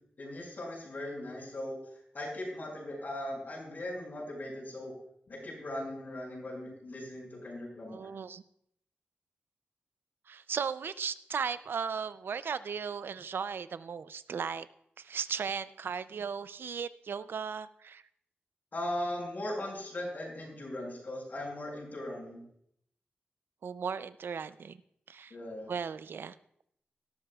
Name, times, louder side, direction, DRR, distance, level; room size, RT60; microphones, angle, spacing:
voice 1, 0.2-4.9 5.3-8.1 18.7-22.4 25.3-25.7, left 1 dB, 55° left, -2 dB, 5.8 m, -39 dB
voice 2, 7.9-8.4 10.3-14.7 15.0-18.0 23.6-24.8 25.1-25.3 25.7-26.3, right 6 dB, 85° right, 14 dB, 0.4 m, -36 dB
18.5 x 12.5 x 2.4 m, 0.72 s
wide cardioid pair, 140°, 4 cm